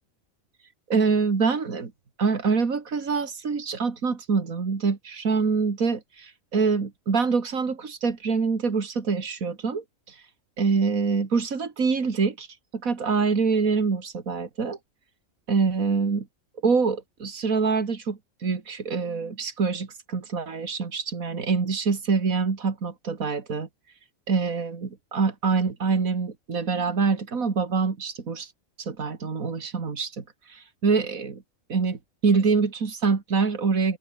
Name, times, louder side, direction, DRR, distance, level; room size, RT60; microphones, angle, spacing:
voice 1, 0.9-1.9 2.2-10.2 10.6-12.5 12.8-14.8 15.5-16.3 16.6-23.7 24.3-28.5 28.8-31.4 31.7-34.0, right 5 dB, 80° right, 2.7 m, -25 dB
omnidirectional pair, 1.4 m